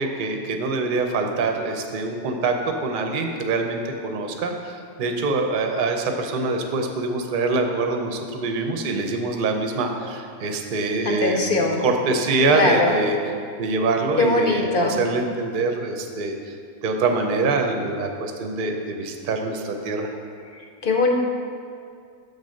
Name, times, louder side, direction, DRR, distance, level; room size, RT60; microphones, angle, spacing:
voice 1, 0.0-2.5 2.8-13.2 13.6-16.3 16.8-20.1, right 3 dB, 50° right, 4 dB, 0.6 m, -24 dB
voice 2, 11.0-11.9 12.5-13.0 14.2-15.0 20.5-21.1, left 2 dB, 50° left, 1 dB, 0.7 m, -21 dB
6.7 x 4.0 x 6.3 m, 2.3 s
omnidirectional pair, 1.5 m